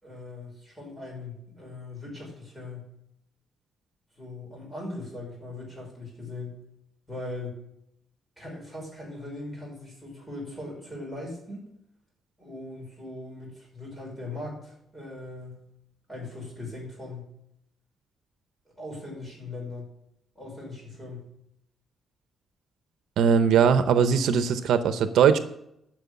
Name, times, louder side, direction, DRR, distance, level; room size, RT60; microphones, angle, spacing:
voice 1, 0.0-2.9 4.2-6.6 7.1-7.6 8.4-11.7 12.4-15.7 16.1-17.3 18.8-19.9 20.3-21.3, left 2 dB, 5° left, -3 dB, 5.9 m, -39 dB
voice 2, 23.2-25.4, right 7 dB, 85° right, 10 dB, 0.8 m, -20 dB
12.0 x 6.3 x 8.4 m, 0.78 s
cardioid pair, 165°, 0 cm